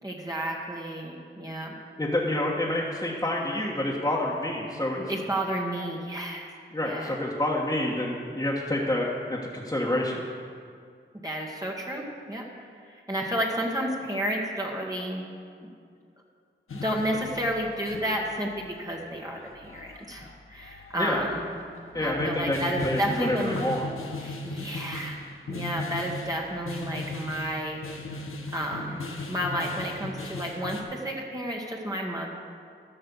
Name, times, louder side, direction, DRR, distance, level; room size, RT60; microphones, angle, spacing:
voice 1, 0.0-1.7 5.0-6.5 6.8-7.2 11.2-12.4 12.9-15.2 15.6-15.7 16.7-21.4 22.0-23.7 24.2-27.8 28.5-32.3, equal, 20° right, -2 dB, 1.5 m, -31 dB
voice 2, 2.0-5.0 6.7-10.2 21.0-21.3 21.9-23.8, left 1 dB, 20° left, -6 dB, 1.5 m, -28 dB
sound 1, 16.7-30.8, left 2 dB, 90° left, 1.0 m, -38 dB
13.5 x 5.5 x 7.1 m, 2.2 s
cardioid pair, 55°, 21 cm